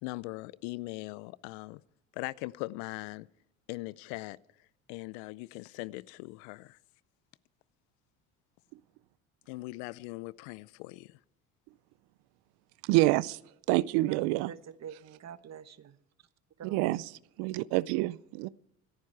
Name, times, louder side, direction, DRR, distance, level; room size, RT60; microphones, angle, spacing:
voice 1, 0.0-1.8 2.1-3.3 3.7-4.4 4.9-6.8 9.5-11.2, left 22 dB, 80° left, 0.6 m, -40 dB
voice 2, 12.9-13.4 13.7-14.5 16.6-17.1 17.4-18.5, right 18 dB, 75° right, 0.6 m, -27 dB
voice 3, 14.0-16.0 16.6-16.9, right 8 dB, 45° right, 1.2 m, -46 dB
27.5 x 9.6 x 4.6 m
supercardioid pair, 75°, 39 cm